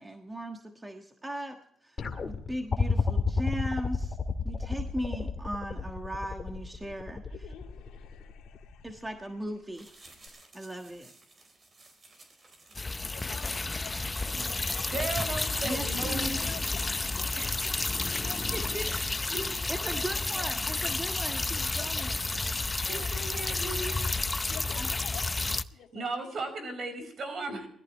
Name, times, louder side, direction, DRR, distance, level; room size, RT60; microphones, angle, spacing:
voice 1, 0.0-1.6 1.8-4.2 4.4-7.2 8.8-10.0 10.5-11.1 15.6-16.4 18.5-18.9 19.5-22.1 24.7-24.9, equal, 15° right, 4 dB, 1.5 m, -38 dB
sound 1, 2.0-9.1 10.3-10.4, left 4 dB, 40° left, 1.9 m, -31 dB
voice 2, 7.2-9.1 13.1-15.2 16.2-17.7 18.2-19.3 19.8-20.6 21.7-22.3 22.8-23.6 24.5-25.4 25.7-26.4, left 10 dB, 85° left, 2 dB, 2.5 m, -49 dB
sound 2, 9.7-24.9, right 2 dB, 35° right, 4.3 m, -56 dB
sound 3, 12.7-25.6, left 3 dB, 20° left, 0.6 m, -31 dB
voice 3, 14.9-16.5 17.4-17.9 19.3-19.6 22.9-23.9 25.9-27.7, right 3 dB, 55° right, 7 dB, 5.1 m, -36 dB
20.5 x 14.0 x 3.2 m, 0.69 s
cardioid pair, 90°, 0 cm